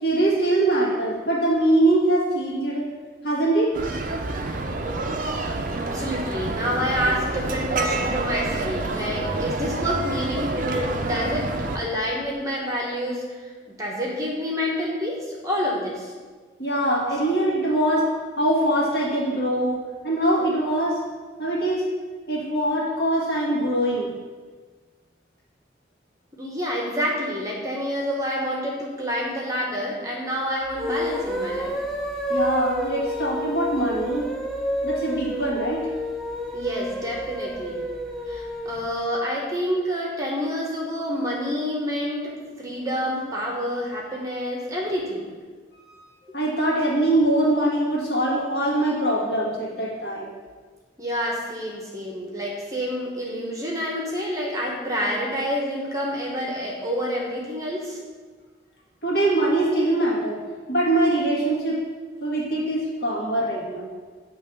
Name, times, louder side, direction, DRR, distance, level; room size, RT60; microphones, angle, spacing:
voice 1, 0.0-2.9 3.2-3.7 16.6-18.1 18.4-21.0 21.4-21.8 22.3-24.1 32.3-34.3 34.8-35.8 46.3-50.3 59.0-60.4 60.7-61.8 62.2-63.9, right 1 dB, 55° left, -5 dB, 1.8 m, -23 dB
sound 1, 3.7-11.8, right 2 dB, 45° right, 0.5 m, -28 dB
voice 2, 5.9-11.5 11.7-13.5 13.8-16.1 17.1-17.2 26.4-31.8 36.5-37.8 38.3-45.3 51.0-58.0, equal, 15° right, -2 dB, 0.9 m, -28 dB
sound 2, 30.7-38.9, equal, ahead, 0.5 m, -30 dB
8.6 x 3.1 x 5.4 m, 1.5 s
head